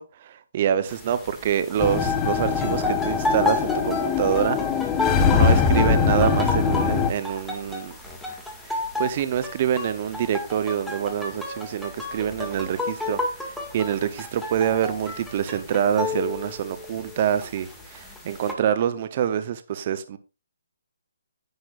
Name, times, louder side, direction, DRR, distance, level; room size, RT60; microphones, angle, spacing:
voice 1, 0.0-4.6 5.3-7.9 8.7-20.2, right 9 dB, 40° right, 0.8 m, -26 dB
sound 1, 0.9-18.5, left 3 dB, 5° left, 2.1 m, -32 dB
sound 2, 1.8-7.1, left 6 dB, 20° left, 1.1 m, -22 dB
10.5 x 9.6 x 2.5 m
hypercardioid pair, 150°, 0 cm